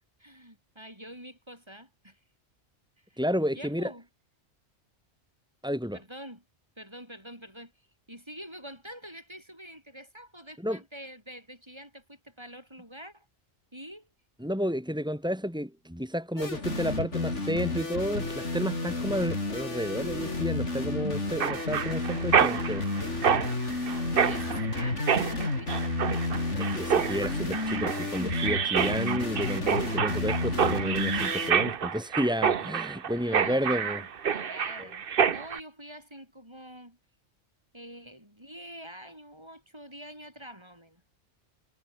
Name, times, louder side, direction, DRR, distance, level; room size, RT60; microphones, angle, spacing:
voice 1, 0.2-2.2 3.0-3.2 3.5-4.1 5.9-6.4 6.8-7.7 8.1-13.3 13.7-14.1 24.2-25.9 33.1-37.0 37.7-41.0, equal, 25° right, 7.9 m, -46 dB
voice 2, 3.2-3.9 5.6-6.0 10.6-10.8 14.4-22.9 26.6-34.0, equal, 5° right, 5.3 m, -31 dB
sound 1, 16.4-31.5, left 2 dB, 85° left, 4.5 m, -31 dB
Mechanisms, 21.4-35.6, right 7 dB, 55° right, 1.1 m, -28 dB
omnidirectional pair, 1.2 m